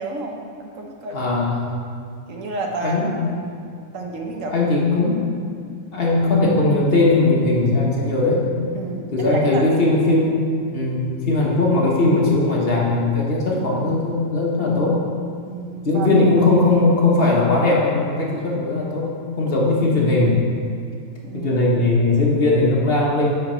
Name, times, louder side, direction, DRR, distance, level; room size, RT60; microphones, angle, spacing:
voice 1, 0.0-1.2 2.3-3.6 3.9-4.6 4.9-5.0 8.7-9.7 10.0-10.2 15.5-16.5 21.2-21.5, right 2 dB, 65° right, 1 dB, 1.2 m, -31 dB
voice 2, 1.1-1.8 2.8-3.1 4.4-5.2 5.9-8.4 9.1-10.4 10.7-15.0 15.8-19.1 19.4-20.4 21.3-23.3, left 2 dB, 45° left, -3 dB, 1.3 m, -19 dB
8.6 x 5.8 x 4.4 m, 2.3 s
omnidirectional pair, 1.5 m